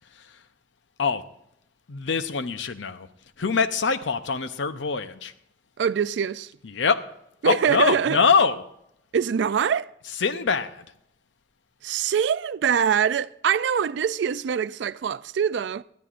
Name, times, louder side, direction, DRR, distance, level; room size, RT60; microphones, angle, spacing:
voice 1, 1.9-3.1 3.4-5.3 6.6-7.0 7.4-8.6 10.1-10.8, left 5 dB, 80° left, 0.7 m, -24 dB
voice 2, 5.8-6.5 7.4-8.2 9.1-9.9 11.8-15.8, right 7 dB, 70° right, 0.3 m, -24 dB
19.5 x 13.0 x 2.5 m
head